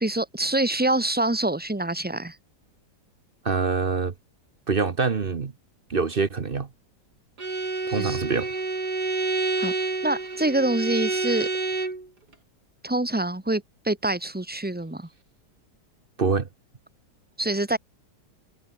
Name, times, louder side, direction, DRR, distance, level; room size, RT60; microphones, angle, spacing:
voice 1, 0.0-2.3 7.9-8.2 9.6-9.7 10.0-11.5 12.8-15.1 17.4-17.8, right 2 dB, 5° right, 1.1 m, -25 dB
voice 2, 3.4-4.1 4.7-5.5 5.9-6.7 7.9-8.5 16.2-16.5, right 4 dB, 35° right, 1.1 m, -25 dB
Bowed string instrument, 7.4-12.1, right 3 dB, 65° right, 4.9 m, -28 dB
omnidirectional pair, 1.9 m